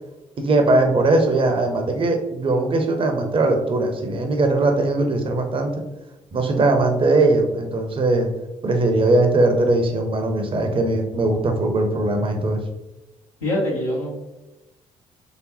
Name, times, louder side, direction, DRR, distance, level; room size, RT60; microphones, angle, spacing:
voice 1, 0.4-5.7 6.3-8.3 8.6-12.6, right 2 dB, 30° right, 4 dB, 0.6 m, -20 dB
voice 2, 13.4-14.2, left 1 dB, 80° left, -7 dB, 0.7 m, -24 dB
3.2 x 2.9 x 3.0 m, 1.0 s
figure-of-eight pair, 45°, 17 cm